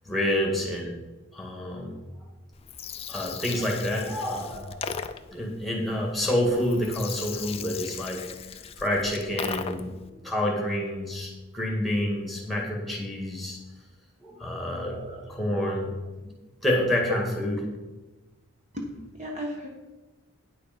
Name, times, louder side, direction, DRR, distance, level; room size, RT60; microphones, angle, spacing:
voice 1, 0.1-0.9 1.3-2.0 3.1-4.8 5.3-8.3 8.8-13.6 14.2-15.0 15.3-15.9 16.6-17.5, left 1 dB, ahead, -1 dB, 1.8 m, -28 dB
Gurgling, 2.5-10.0, left 7 dB, 30° left, 0.4 m, -38 dB
voice 2, 14.7-15.3 15.8-15.9 18.7-19.7, equal, 35° right, 0 dB, 1.2 m, -37 dB
9.5 x 6.8 x 5.2 m, 1.2 s
head